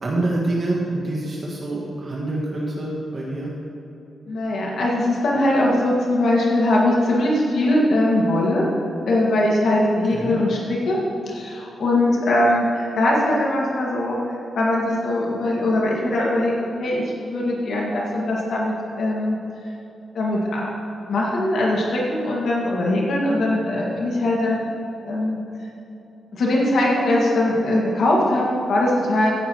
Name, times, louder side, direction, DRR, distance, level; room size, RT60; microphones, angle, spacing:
voice 1, 0.0-3.5 10.1-10.4, right 2 dB, 50° right, -4 dB, 1.8 m, -26 dB
voice 2, 4.3-8.7 9.0-11.0 11.3-19.4 20.1-20.7 21.1-24.7 25.0-25.4 26.3-29.3, left 1 dB, 75° left, -4 dB, 2.0 m, -21 dB
15.5 x 9.6 x 3.1 m, 3.0 s
cardioid pair, 80°, 0 cm